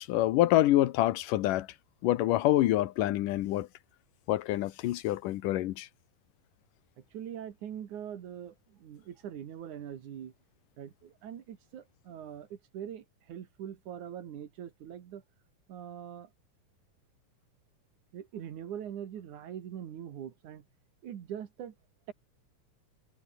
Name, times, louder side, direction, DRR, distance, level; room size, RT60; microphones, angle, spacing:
voice 1, 0.0-1.7 2.0-3.7 4.3-5.9, left 15 dB, 90° left, 2.6 m, -26 dB
voice 2, 7.0-10.3 10.8-15.2 15.7-16.3 18.1-20.7 21.0-21.7, right 9 dB, 70° right, 3.3 m, -42 dB
omnidirectional pair, 3.6 m